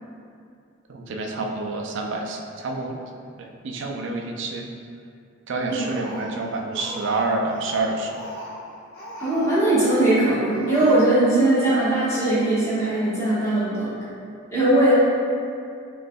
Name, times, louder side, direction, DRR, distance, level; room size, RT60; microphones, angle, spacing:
voice 1, 0.9-3.0 3.4-4.7 5.5-8.1, right 3 dB, 60° right, 2 dB, 0.4 m, -28 dB
Speech, 5.7-7.2 7.5-9.5 9.8-10.2 10.5-10.9, equal, 45° left, 1.2 m, -39 dB
voice 2, 9.2-14.0 14.5-14.9, right 1 dB, 15° left, -12 dB, 1.3 m, -20 dB
5.2 x 3.1 x 2.3 m, 2.4 s
head